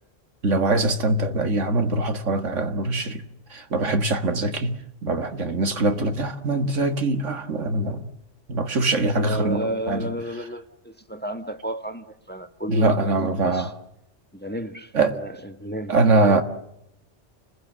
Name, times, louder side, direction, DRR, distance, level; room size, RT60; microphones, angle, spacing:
voice 1, 0.4-3.2 3.5-8.1 8.5-10.1 12.7-13.7 14.9-15.2 15.9-16.4, right 2 dB, 80° right, 2.2 m, -23 dB
voice 2, 9.0-13.7 14.3-16.4, right 1 dB, 10° left, 1.4 m, -32 dB
30.0 x 21.0 x 7.7 m
omnidirectional pair, 1.3 m